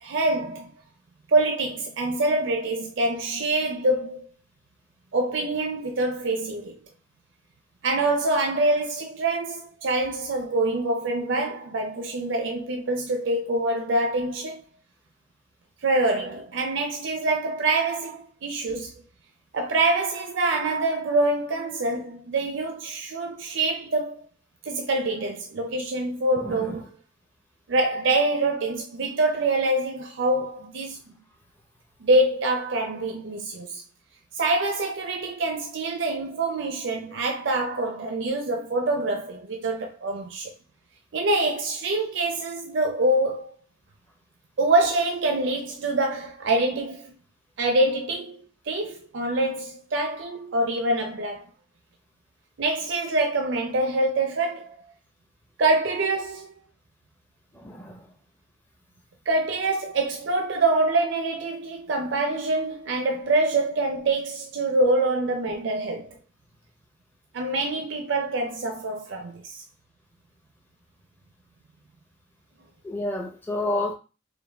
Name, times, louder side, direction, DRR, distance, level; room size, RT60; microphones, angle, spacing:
voice 1, 0.0-0.7 1.3-4.3 5.1-6.8 7.8-14.6 15.8-19.0 19.5-24.2 24.7-26.8 27.7-31.2 32.0-33.8 34.3-40.5 41.1-43.5 44.6-47.1 47.6-48.4 48.7-51.5 52.6-54.7 55.6-56.5 59.3-66.1 67.3-69.6, right 2 dB, 70° right, 0.5 m, -25 dB
voice 2, 26.3-26.8 57.5-58.1 72.8-73.9, left 1 dB, 10° left, 0.6 m, -30 dB
4.6 x 2.2 x 3.3 m
head